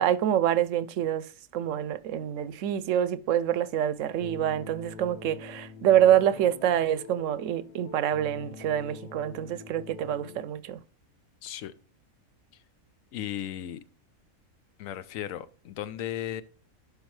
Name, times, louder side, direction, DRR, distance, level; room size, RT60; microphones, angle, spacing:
voice 1, 0.0-10.8, right 10 dB, 75° right, 0.9 m, -26 dB
sound 1, 4.2-10.4, left 5 dB, 60° left, 0.4 m, -45 dB
voice 2, 11.4-11.7 12.5-12.6 13.1-13.8 14.8-16.4, left 11 dB, 80° left, 1.0 m, -36 dB
11.5 x 5.3 x 3.2 m
omnidirectional pair, 1.4 m